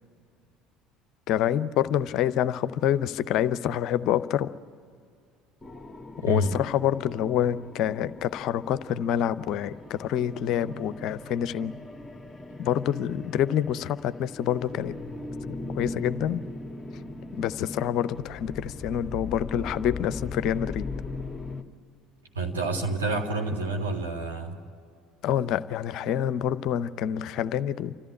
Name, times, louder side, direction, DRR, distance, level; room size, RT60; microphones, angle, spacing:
voice 1, 1.3-4.5 6.2-11.7 12.6-14.9 15.7-16.4 17.3-20.9 25.2-27.9, left 10 dB, 55° left, 15 dB, 0.6 m, -27 dB
sound 1, 5.6-21.6, left 3 dB, 10° left, 1.6 m, -39 dB
voice 2, 6.2-6.5 22.3-24.6, right 2 dB, 80° right, 0 dB, 2.1 m, -28 dB
29.5 x 14.0 x 9.8 m, 2.3 s
figure-of-eight pair, 60°, 0 cm